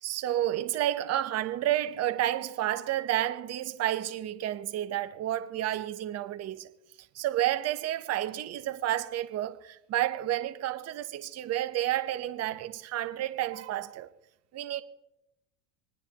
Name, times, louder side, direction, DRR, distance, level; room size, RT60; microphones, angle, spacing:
voice 1, 0.0-6.7 7.1-14.1 14.5-14.8, right 13 dB, 40° right, 1.1 m, -30 dB
26.5 x 9.8 x 3.0 m
supercardioid pair, 110°, 37 cm